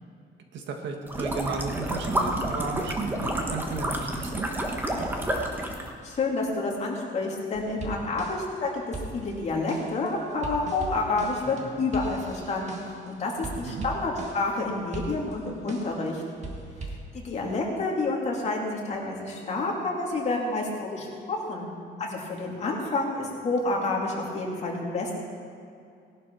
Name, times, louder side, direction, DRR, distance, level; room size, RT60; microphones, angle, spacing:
voice 1, 0.5-4.5 13.6-13.9, right 4 dB, 85° right, 3 dB, 1.8 m, -34 dB
sound 1, 1.1-5.9, right 1 dB, 10° right, 1.3 m, -29 dB
voice 2, 6.0-16.2 17.1-21.7 22.0-25.1, left 3 dB, 40° left, -2 dB, 2.7 m, -29 dB
sound 2, 7.5-8.6 8.9-13.1 13.4-14.6 14.9-16.1 16.4-17.0, right 2 dB, 40° right, 1.7 m, -39 dB
18.5 x 11.5 x 4.7 m, 2.5 s
cardioid pair, 170°, 18 cm